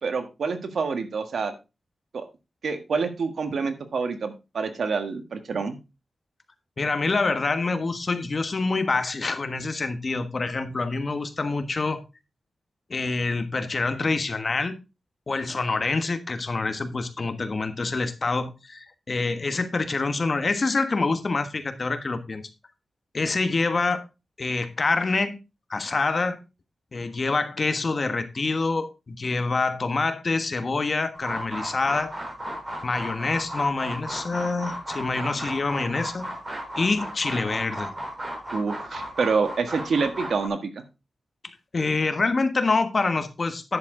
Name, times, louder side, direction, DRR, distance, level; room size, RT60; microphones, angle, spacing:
voice 1, 0.0-1.5 2.1-2.2 2.6-5.8 38.5-40.8, right 5 dB, 75° right, 1.6 m, -27 dB
voice 2, 6.8-12.0 12.9-14.7 15.3-22.4 23.1-24.0 24.4-25.4 25.7-26.4 26.9-32.1 32.8-36.2 36.8-37.9 41.7-43.8, left 3 dB, 45° left, 1.3 m, -26 dB
sound 1, 31.1-40.5, equal, 25° right, 4.0 m, -35 dB
10.5 x 7.0 x 3.8 m
wide cardioid pair, 100°, 0 cm